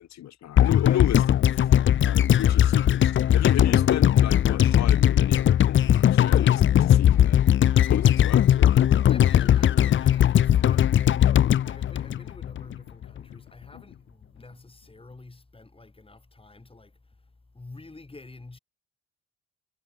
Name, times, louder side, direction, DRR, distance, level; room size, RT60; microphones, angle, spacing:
voice 1, 0.0-1.7 2.0-7.4 7.9-8.8 13.7-13.8, left 12 dB, 65° left, 1.0 m, -34 dB
sound 1, 0.6-12.8 13.0-13.1, left 11 dB, 40° left, 0.5 m, -19 dB
voice 2, 9.1-18.6, left 3 dB, 20° left, 6.3 m, -48 dB
cardioid pair, 90°, 30 cm